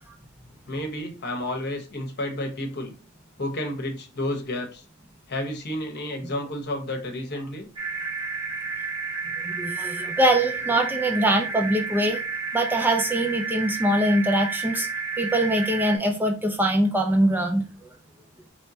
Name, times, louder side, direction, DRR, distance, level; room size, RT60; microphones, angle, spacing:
voice 1, 0.7-2.9 3.4-4.8 5.3-7.7, left 1 dB, 50° left, 4 dB, 1.0 m, -31 dB
sound 1, 7.8-16.0, right 5 dB, 25° right, 1.8 m, -31 dB
voice 2, 9.4-12.2 12.5-14.9 15.2-17.7, right 1 dB, 10° right, 2 dB, 0.4 m, -23 dB
4.4 x 3.1 x 2.7 m, 0.33 s
head